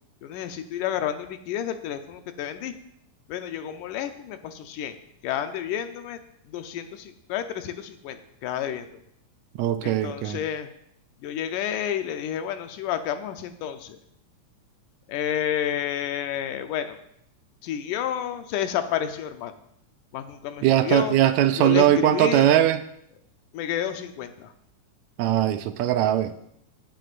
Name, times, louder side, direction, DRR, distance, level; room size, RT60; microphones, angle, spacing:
voice 1, 0.2-2.7 3.3-5.0 5.2-6.2 6.5-8.9 9.8-10.7 11.2-14.0 15.1-17.0 17.6-19.5 20.1-21.2 21.6-22.5 23.5-24.5, left 10 dB, 85° left, 8 dB, 2.3 m, -30 dB
voice 2, 9.6-10.4 20.6-22.8 25.2-26.3, right 12 dB, 80° right, 10 dB, 1.7 m, -20 dB
16.5 x 9.8 x 2.5 m, 0.73 s
omnidirectional pair, 3.6 m